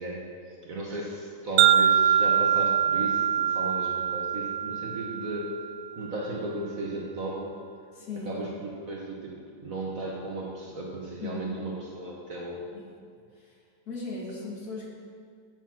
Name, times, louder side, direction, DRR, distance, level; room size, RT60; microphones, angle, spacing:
voice 1, 0.0-5.5 6.0-7.6 8.2-12.6, right 2 dB, 50° right, -3 dB, 1.3 m, -35 dB
Wind chime, 1.6-5.9, right 9 dB, 80° right, 0.8 m, -24 dB
voice 2, 7.9-8.4 11.2-11.5 12.7-12.9 13.4-13.6 13.9-14.9, left 3 dB, 50° left, -2 dB, 1.7 m, -37 dB
8.9 x 6.2 x 5.7 m, 2.1 s
omnidirectional pair, 2.2 m